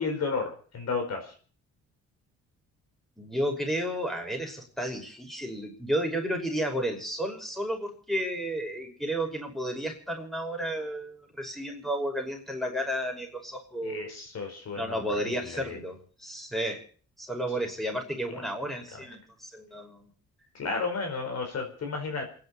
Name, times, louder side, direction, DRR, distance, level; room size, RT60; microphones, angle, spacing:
voice 1, 0.0-1.3 13.8-15.8 20.5-22.4, left 4 dB, 55° left, 4 dB, 4.6 m, -33 dB
voice 2, 3.2-14.1 14.7-16.8 17.2-20.1, equal, ahead, 2 dB, 5.7 m, -32 dB
28.0 x 11.0 x 4.3 m, 0.42 s
cardioid pair, 90°, 30 cm